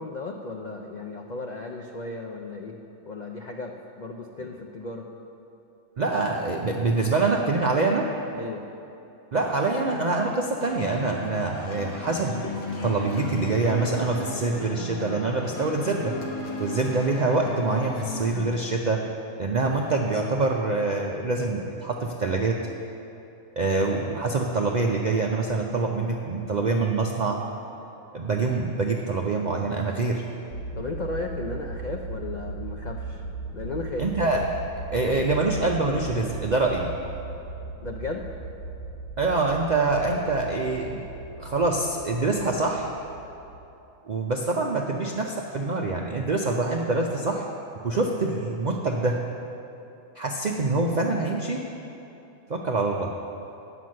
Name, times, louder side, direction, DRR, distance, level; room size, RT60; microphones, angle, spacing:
voice 1, 0.0-2.8 3.1-5.1 8.3-8.6 30.8-33.2 33.5-34.3 37.8-38.2, left 3 dB, 65° left, 2 dB, 0.4 m, -35 dB
voice 2, 6.0-8.1 9.3-16.2 16.6-19.1 19.4-22.7 23.6-27.4 28.1-30.2 34.0-34.4 34.9-36.9 39.2-41.1 41.4-42.9 44.0-47.4 47.8-49.2 50.2-51.7 52.5-53.1, right 3 dB, 65° right, 0 dB, 0.4 m, -25 dB
sound 1, 10.6-18.5, left 2 dB, 90° left, 1.5 m, -35 dB
sound 2, 30.5-43.7, right 3 dB, 50° left, 1.6 m, -38 dB
9.3 x 5.9 x 7.4 m, 2.8 s
omnidirectional pair, 1.5 m